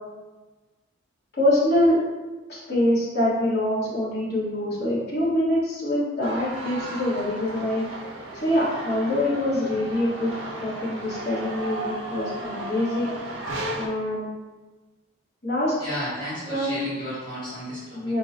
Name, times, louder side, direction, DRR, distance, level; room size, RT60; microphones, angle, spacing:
voice 1, 1.4-2.0 2.5-7.9 8.4-10.3 10.6-13.3 13.8-14.3 15.4-15.7 16.4-16.8 17.9-18.2, left 1 dB, 50° left, -8 dB, 1.3 m, -24 dB
sound 1, 6.2-13.9, right 1 dB, 75° right, 0.6 m, -35 dB
voice 2, 15.8-18.0, equal, 20° left, -11 dB, 0.8 m, -33 dB
4.4 x 2.1 x 2.7 m, 1.2 s
head